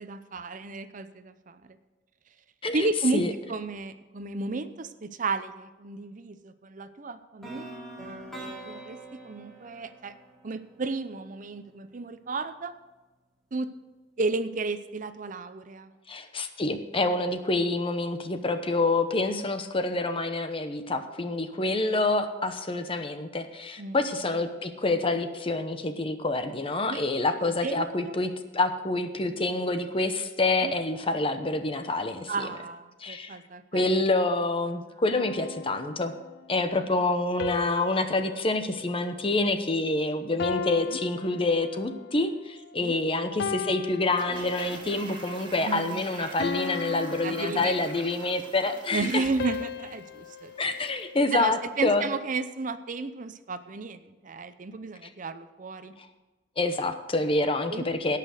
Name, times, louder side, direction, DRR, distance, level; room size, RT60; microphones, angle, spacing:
voice 1, 0.0-1.6 2.7-3.2 3.5-9.0 9.2-10.1 10.4-12.7 13.5-13.7 14.2-15.9 23.8-24.0 26.9-27.0 27.6-28.1 30.6-30.7 32.3-33.9 40.9-41.0 42.8-43.0 45.6-46.3 47.2-47.7 48.9-50.5 51.3-55.9 57.7-58.0, right 3 dB, 45° right, 11 dB, 0.6 m, -33 dB
sound 1, 7.4-11.4, right 1 dB, ahead, 2.8 m, -43 dB
voice 2, 16.1-32.3 33.0-33.4 33.7-36.1 36.5-49.2 50.6-52.0 56.6-58.2, left 2 dB, 30° left, 8 dB, 0.9 m, -27 dB
sound 2, 35.1-36.4 37.4-39.9 40.4-42.1 42.7-42.9 43.4-44.9 45.4-45.7 46.4-48.3 49.4-51.8, left 6 dB, 65° left, 0.4 m, -38 dB
Toilet flush, 44.0-51.1 51.4-51.5, right 3 dB, 25° right, 1.6 m, -45 dB
17.5 x 5.9 x 6.5 m, 1.2 s
head